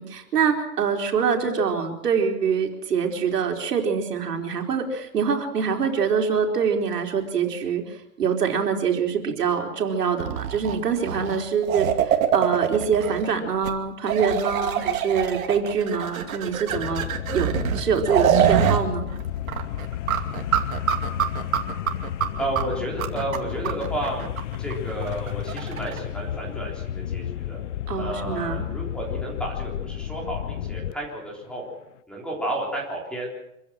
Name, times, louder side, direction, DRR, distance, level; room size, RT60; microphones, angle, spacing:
voice 1, 0.0-17.1 17.3-19.1 27.9-28.7, right 6 dB, 80° right, 3 dB, 4.4 m, -25 dB
sound 1, 10.2-13.3 13.6-13.7 14.1-18.8 19.1-19.2 19.5-26.0, right 9 dB, 60° right, 2.6 m, -24 dB
sound 2, 16.7-31.2 31.5-31.6, left 11 dB, 50° left, 0.7 m, -32 dB
voice 2, 22.4-24.2 24.6-27.6 28.0-31.6 32.1-33.3, right 1 dB, ahead, -2 dB, 3.8 m, -32 dB
26.0 x 15.5 x 7.6 m, 0.85 s
hypercardioid pair, 165°, 46 cm